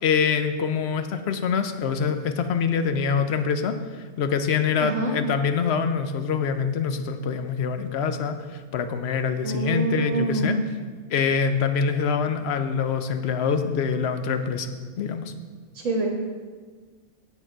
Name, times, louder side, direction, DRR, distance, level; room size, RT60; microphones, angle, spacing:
voice 1, 0.0-10.6 11.1-14.7 15.0-15.3, left 6 dB, 60° left, 9 dB, 0.8 m, -25 dB
voice 2, 4.8-5.1 9.4-10.5 15.8-16.1, right 3 dB, 65° right, -2 dB, 1.5 m, -26 dB
8.8 x 8.0 x 4.5 m, 1.5 s
omnidirectional pair, 1.4 m